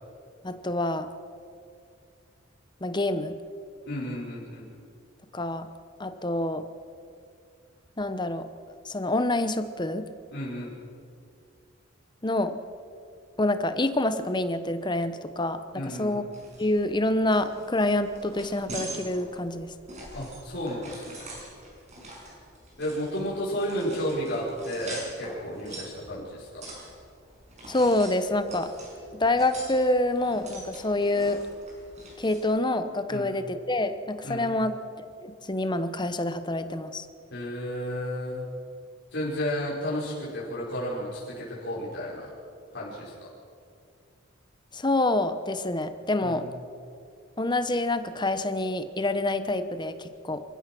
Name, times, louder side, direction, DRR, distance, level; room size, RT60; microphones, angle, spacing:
voice 1, 0.4-1.1 2.8-3.3 5.3-5.7 6.0-6.6 8.0-8.4 8.9-10.0 12.2-12.5 13.4-15.6 16.0-16.2 16.6-19.7 27.7-28.7 29.2-31.4 32.2-37.0 44.7-46.4 47.4-50.4, left 2 dB, 20° left, 10 dB, 1.0 m, -27 dB
voice 2, 3.9-4.7 10.3-10.7 15.7-16.2 20.1-21.3 22.8-26.6 33.1-33.4 34.2-34.5 37.3-38.4 39.1-42.3 42.7-43.1 46.2-46.5, equal, 55° left, -7 dB, 5.2 m, -32 dB
sound 1, 16.3-32.4, right 2 dB, 35° right, 6.2 m, -44 dB
27.5 x 15.0 x 6.1 m, 2.4 s
head